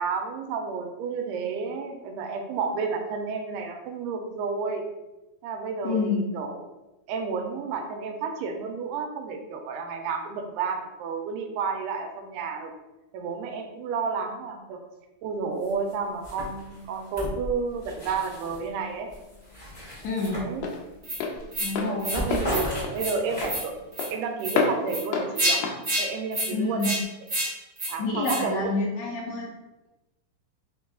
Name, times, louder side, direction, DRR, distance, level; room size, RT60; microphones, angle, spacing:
voice 1, 0.0-4.8 5.4-6.6 7.1-12.7 13.1-14.8 15.2-19.1 20.3-20.7 21.9-23.7 24.1-25.6 26.0-27.0 27.9-28.7, right 5 dB, 85° right, 4 dB, 2.1 m, -31 dB
voice 2, 5.8-6.2 20.0-20.4 21.6-22.1 26.5-26.9 28.0-29.5, left 3 dB, 70° left, -3 dB, 1.8 m, -27 dB
sound 1, 15.6-15.9 16.2-18.7 19.1-21.0 21.3-21.6 21.8-23.8, equal, 50° left, 0.5 m, -36 dB
Walk footsteps, 18.3-27.0, left 4 dB, 90° left, 2.1 m, -32 dB
sound 2, 21.0-21.2 21.5-21.7 22.0-22.2 22.5-22.6 23.0-23.2 23.4-23.6 23.9-24.1 24.4-24.6 24.9-25.0 25.4-25.6 25.8-26.0 26.3-26.5 26.8-27.0 27.3-27.5 27.8-27.9 28.2-28.4, right 1 dB, 55° right, 0.7 m, -28 dB
5.2 x 2.3 x 3.7 m, 1.0 s
omnidirectional pair, 3.6 m